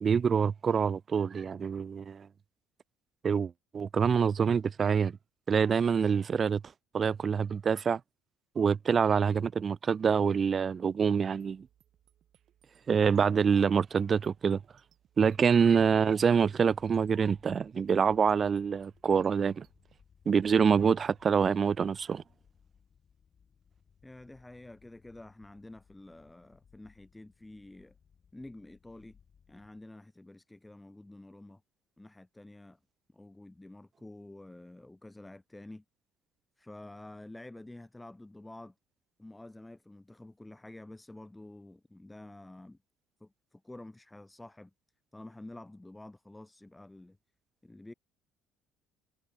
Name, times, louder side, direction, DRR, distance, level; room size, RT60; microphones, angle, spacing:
voice 1, 0.0-2.3 3.2-5.2 5.5-6.6 6.9-8.0 8.6-11.7 12.9-14.6 15.2-19.7 20.3-22.2, right 6 dB, 40° right, 0.3 m, -26 dB
sound 1, 11.4-20.0, right 11 dB, 55° right, 3.2 m, -68 dB
sound 2, 15.3-29.8, left 7 dB, 40° left, 2.3 m, -64 dB
voice 2, 24.0-28.0 28.3-29.2 29.5-31.6 32.0-32.8 33.1-35.8 36.6-38.7 39.2-42.8 43.2-44.7 45.1-47.2 47.6-47.9, left 2 dB, 10° left, 2.7 m, -49 dB
hypercardioid pair, 55°, 0 cm